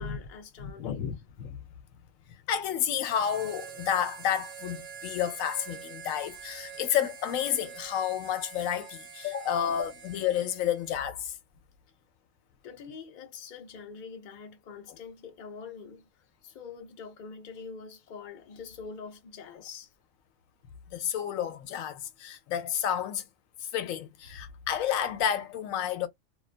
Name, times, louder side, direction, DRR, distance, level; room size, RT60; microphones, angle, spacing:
voice 1, 0.0-1.1 12.6-19.9, left 5 dB, 45° left, 0.7 m, -45 dB
voice 2, 0.6-1.6 2.3-11.3 20.9-23.2 23.6-26.1, left 9 dB, 85° left, 1.0 m, -30 dB
Harmonica, 3.1-11.1, right 7 dB, 70° right, 0.8 m, -46 dB
2.3 x 2.3 x 2.4 m
omnidirectional pair, 1.4 m